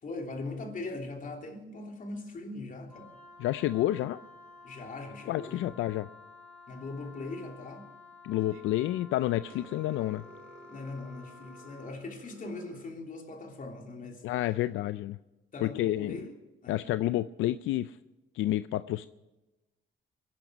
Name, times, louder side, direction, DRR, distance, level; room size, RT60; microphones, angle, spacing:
voice 1, 0.0-3.1 4.0-4.1 4.6-5.7 6.7-7.9 10.7-14.2 15.5-16.3 16.6-16.8, left 2 dB, 45° left, 3.1 m, -40 dB
Wind instrument woodwind instrument, 2.9-12.0, left 4 dB, 5° left, 4.2 m, -52 dB
voice 2, 3.4-4.2 5.3-6.1 8.2-10.2 14.2-15.2 15.6-16.2 16.7-18.0 18.3-19.1, left 14 dB, 85° left, 0.4 m, -29 dB
sound 1, 8.4-8.9 9.5-12.9, right 3 dB, 85° right, 2.1 m, -53 dB
23.0 x 11.0 x 5.2 m
cardioid pair, 90°, 20 cm